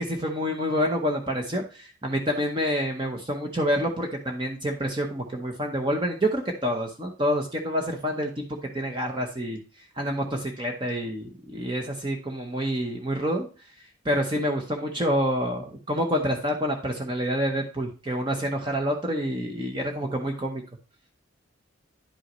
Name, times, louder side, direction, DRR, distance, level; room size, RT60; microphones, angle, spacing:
voice 1, 0.0-8.3 8.7-9.6 10.0-13.5 14.0-20.6, equal, 25° right, 3 dB, 0.9 m, -27 dB
10.0 x 5.5 x 3.1 m, 0.35 s
head